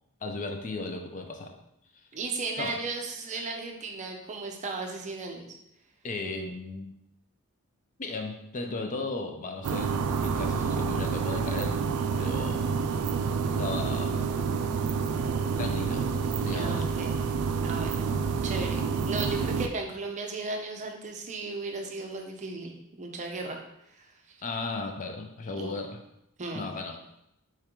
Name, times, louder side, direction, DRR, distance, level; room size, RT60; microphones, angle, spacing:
voice 1, 0.2-1.6 1.9-2.0 2.6-2.8 3.3-3.5 6.0-6.9 8.0-11.8 12.2-12.8 13.6-14.2 15.6-16.1 16.4-16.9 24.4-26.0 26.5-27.0, left 3 dB, 35° left, 4 dB, 0.5 m, -36 dB
voice 2, 2.1-5.5 16.5-17.1 17.6-18.1 18.4-23.6 23.9-24.1 25.6-25.8 26.4-26.7, right 3 dB, 35° right, 2 dB, 0.5 m, -35 dB
sound 1, 9.6-19.7, right 5 dB, 85° right, 0.4 m, -28 dB
4.4 x 3.7 x 3.0 m, 0.80 s
head